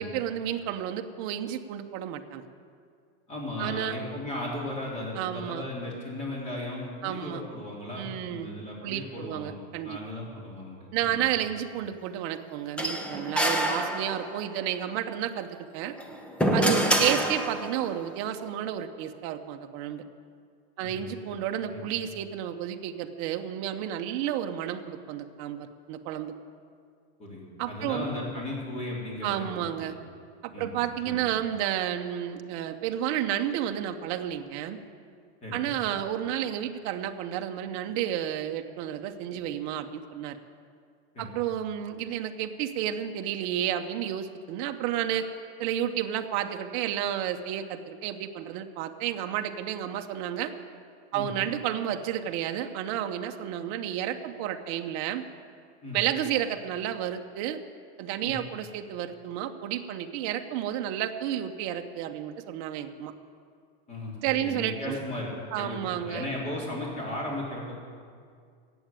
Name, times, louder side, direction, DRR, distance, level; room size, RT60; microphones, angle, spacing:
voice 1, 0.0-2.4 3.6-4.0 5.1-5.7 7.0-7.4 7.9-8.5 8.8-10.0 10.9-15.9 16.5-20.0 20.8-26.3 27.6-28.0 29.2-30.0 30.4-34.8 35.5-40.4 41.2-45.3 45.6-50.5 51.1-55.2 55.9-57.6 58.0-63.1 64.2-65.0 65.5-66.3, right 11 dB, 40° right, 5 dB, 0.8 m, -31 dB
voice 2, 3.3-9.5 9.8-11.2 16.7-16.9 20.8-21.1 21.7-21.8 27.2-29.9 30.5-31.3 35.4-35.7 41.1-41.3 51.1-51.3 55.8-56.0 58.2-58.4 63.9-65.3 65.6-67.8, left 1 dB, 20° left, -3 dB, 3.5 m, -36 dB
sound 1, 12.8-14.5 15.9-17.9, equal, 5° left, 0.6 m, -27 dB
15.0 x 8.1 x 9.1 m, 2.2 s
supercardioid pair, 160°, 33 cm